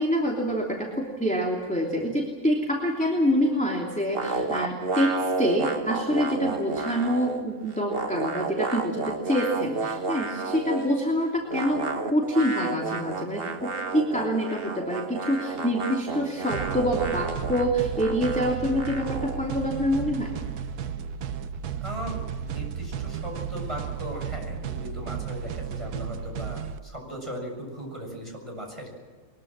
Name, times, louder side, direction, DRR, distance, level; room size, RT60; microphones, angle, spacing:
voice 1, 0.0-11.8 12.1-20.4, equal, 5° left, -2 dB, 3.0 m, -26 dB
sound 1, 4.2-7.4 7.7-11.0 11.5-19.5, right 4 dB, 40° right, 1.4 m, -32 dB
sound 2, 16.5-26.8, right 7 dB, 85° right, 1.4 m, -34 dB
voice 2, 21.8-28.9, equal, 20° right, 0 dB, 7.1 m, -38 dB
23.0 x 21.5 x 7.5 m, 1.5 s
omnidirectional pair, 1.6 m